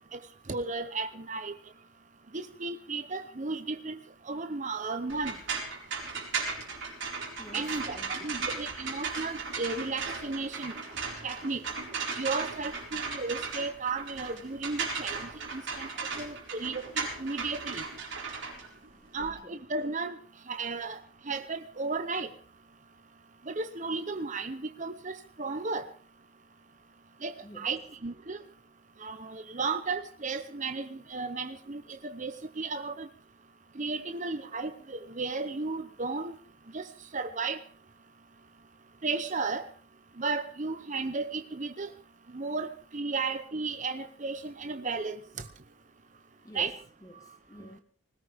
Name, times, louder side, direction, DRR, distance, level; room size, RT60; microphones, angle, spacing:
voice 1, 0.5-1.5 2.3-4.0 4.3-5.4 7.5-10.7 11.2-11.6 12.2-17.8 19.1-20.2 20.5-21.0 21.3-22.3 23.5-25.9 27.2-28.4 29.0-33.1 33.8-36.4 36.7-36.8 37.1-37.6 39.0-39.7 40.2-41.9 42.3-45.4 46.5-46.7, right 3 dB, 35° right, 0.8 m, -34 dB
sound 1, 5.1-19.3, right 5 dB, 55° right, 4.6 m, -36 dB
voice 2, 7.4-8.3 18.4-19.6 27.4-27.7 29.5-29.6 46.4-47.8, equal, 15° left, 1.4 m, -50 dB
20.0 x 17.0 x 3.5 m
head